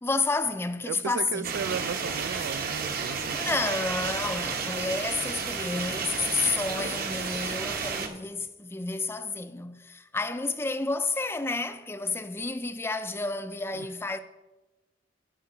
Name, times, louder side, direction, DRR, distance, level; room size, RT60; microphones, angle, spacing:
voice 1, 0.0-1.6 3.3-14.2, left 3 dB, 10° left, 0.4 m, -30 dB
voice 2, 0.8-3.4 13.7-13.9, right 6 dB, 75° right, 0.3 m, -35 dB
sound 1, 1.4-8.1, right 5 dB, 50° right, 1.0 m, -32 dB
16.0 x 5.7 x 3.8 m
head